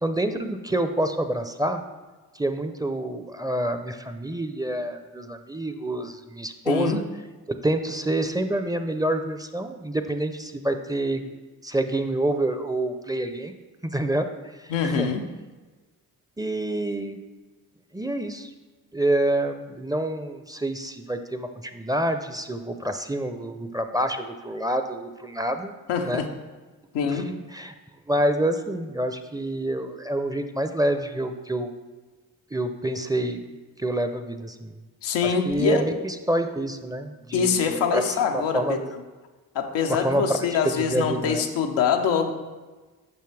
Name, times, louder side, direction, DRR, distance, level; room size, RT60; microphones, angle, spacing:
voice 1, 0.0-1.8 2.3-7.0 7.6-11.3 11.6-13.5 13.8-14.3 14.6-15.1 16.4-17.2 17.9-18.5 18.9-25.7 26.0-26.2 27.1-27.2 27.5-27.7 28.1-31.7 32.5-33.4 33.8-34.8 35.2-38.0 38.3-38.8 39.9-41.4, right 1 dB, 10° right, 7 dB, 0.5 m, -27 dB
voice 2, 6.7-7.0 14.7-15.2 25.9-26.3 26.9-27.3 35.0-35.9 37.3-39.0 39.5-42.3, left 6 dB, 90° left, 4 dB, 0.6 m, -24 dB
7.0 x 5.5 x 3.3 m, 1.3 s
supercardioid pair, 40°, 41 cm